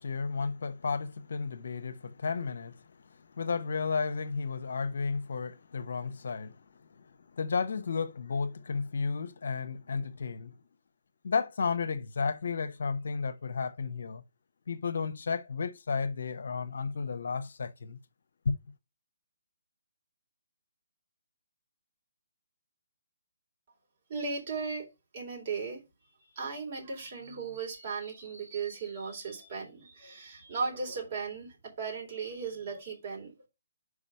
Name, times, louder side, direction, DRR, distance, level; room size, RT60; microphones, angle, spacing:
voice 1, 0.0-10.5 11.2-14.2 14.7-18.0 18.4-18.5, left 5 dB, 65° left, 0.8 m, -33 dB
voice 2, 24.1-24.9 25.1-25.8 26.4-33.3, right 5 dB, 45° right, 3.7 m, -37 dB
4.9 x 4.9 x 5.6 m
figure-of-eight pair, 150°, 0 cm